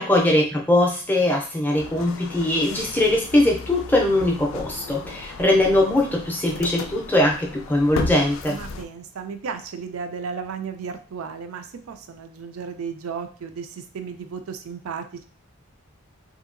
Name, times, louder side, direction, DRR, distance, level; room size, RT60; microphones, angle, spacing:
voice 1, 0.0-8.6, left 1 dB, 10° left, 0 dB, 0.4 m, -21 dB
sound 1, 1.8-8.8, left 4 dB, 70° left, 0.3 m, -35 dB
voice 2, 8.5-15.2, right 6 dB, 80° right, 7 dB, 0.4 m, -34 dB
2.8 x 2.6 x 2.5 m, 0.38 s
head